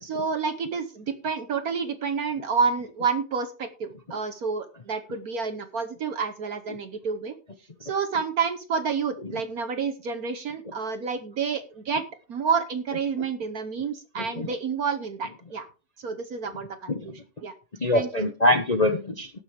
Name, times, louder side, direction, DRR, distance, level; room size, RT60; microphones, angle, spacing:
voice 1, 0.0-7.4 7.8-12.0 12.3-15.7 16.0-17.1 17.4-17.5 17.9-18.3, right 5 dB, 55° right, 9 dB, 1.2 m, -29 dB
voice 2, 14.2-14.5 16.9-17.1 17.8-19.3, left 1 dB, 45° left, 6 dB, 0.5 m, -24 dB
18.0 x 6.8 x 3.4 m, 0.33 s
omnidirectional pair, 2.3 m